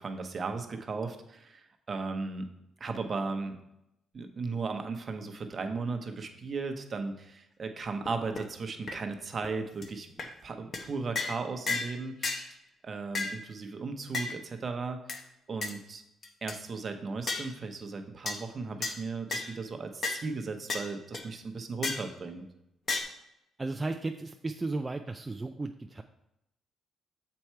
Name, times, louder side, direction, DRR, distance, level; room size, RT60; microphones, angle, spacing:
voice 1, 0.0-2.5 2.8-3.6 4.1-10.1 10.4-12.6 12.8-15.2 15.5-16.0 16.4-22.4, right 4 dB, 40° right, 5 dB, 0.9 m, -36 dB
sound 1, 8.1-8.2 8.4-8.5 8.9-9.0 9.4-9.5 9.8-9.9 10.2-10.3 10.7-10.9 11.2-11.4 11.7-11.9 12.2-12.4 13.1-13.4 14.1-14.3 15.1-15.2 15.6-15.7 16.2-16.6 17.3-17.5 18.3-18.4 18.8-19.0 19.3-19.5 20.0-20.2 20.7-20.9 21.1-21.2 21.8-22.1 22.9-23.0, left 3 dB, 45° left, 0.9 m, -32 dB
voice 2, 23.6-26.0, right 3 dB, 20° right, 5 dB, 0.4 m, -34 dB
7.1 x 4.6 x 4.4 m, 0.84 s
cardioid pair, 90°, 0 cm